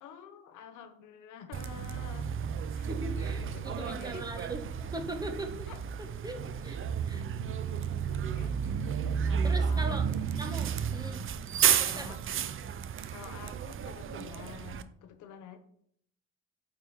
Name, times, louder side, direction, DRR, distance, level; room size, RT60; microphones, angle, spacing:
voice 1, 0.0-2.3 2.7-2.9 3.1-4.3 5.7-5.8 8.1-10.2 10.5-10.7 11.8-12.4 13.1-15.6, left 8 dB, 85° left, 8 dB, 0.8 m, -49 dB
Bus, 1.5-14.8, right 7 dB, 45° right, 0.5 m, -32 dB
voice 2, 2.9-5.7 6.2-6.8 7.1-7.2 9.4-10.0 10.4-11.2 11.8-12.2, right 1 dB, 15° right, 4 dB, 1.1 m, -40 dB
8.9 x 3.6 x 4.3 m, 0.69 s
cardioid pair, 90°, 30 cm